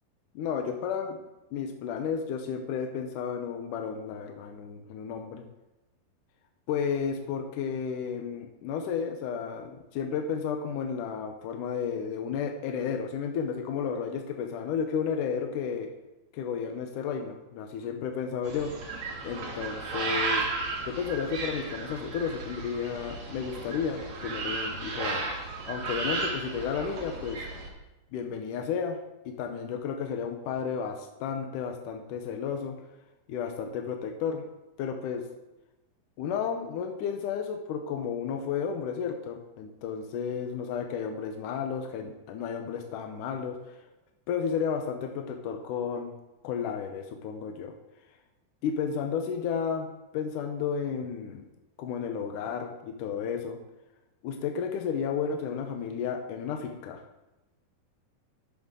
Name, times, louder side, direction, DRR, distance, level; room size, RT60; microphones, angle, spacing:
voice 1, 0.4-1.2 1.5-5.4 6.7-15.9 16.3-18.7 19.2-20.4 20.8-25.3 25.7-27.4 28.1-29.0 29.3-32.8 33.3-34.4 34.8-35.2 36.2-43.8 44.3-46.1 46.4-47.8 48.6-49.9 50.1-51.4 51.8-53.6 54.2-57.0, left 6 dB, 75° left, 4 dB, 2.0 m, -32 dB
sound 1, 18.4-27.7, right 3 dB, 55° right, 2.9 m, -34 dB
12.0 x 7.4 x 3.7 m, 1.0 s
omnidirectional pair, 4.3 m